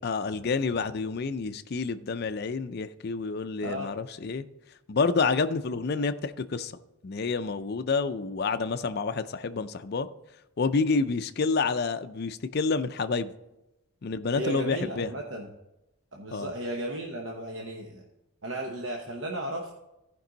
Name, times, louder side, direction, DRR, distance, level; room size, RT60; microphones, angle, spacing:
voice 1, 0.0-4.4 4.9-6.7 7.0-10.1 10.6-13.3 14.0-15.1 16.3-16.5, left 4 dB, 45° left, 0.4 m, -28 dB
voice 2, 14.3-15.5 16.1-18.0 18.4-19.7, right 1 dB, 60° right, 1.0 m, -34 dB
14.5 x 5.3 x 3.9 m
head